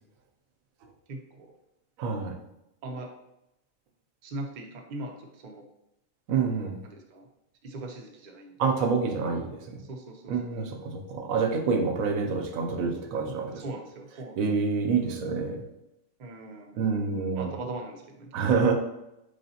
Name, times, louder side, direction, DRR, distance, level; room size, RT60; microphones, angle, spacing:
voice 1, 1.1-1.5 2.8-3.1 4.2-5.6 6.8-7.2 7.6-8.6 9.9-10.3 13.6-14.4 16.2-16.8 17.4-18.3, right 2 dB, 55° right, 2 dB, 0.5 m, -40 dB
voice 2, 2.0-2.4 6.3-6.8 8.6-9.8 10.3-13.7 14.4-15.6 16.8-17.6 18.3-18.7, right 5 dB, 90° right, 4 dB, 1.0 m, -27 dB
4.0 x 3.4 x 2.7 m, 0.87 s
omnidirectional pair, 1.4 m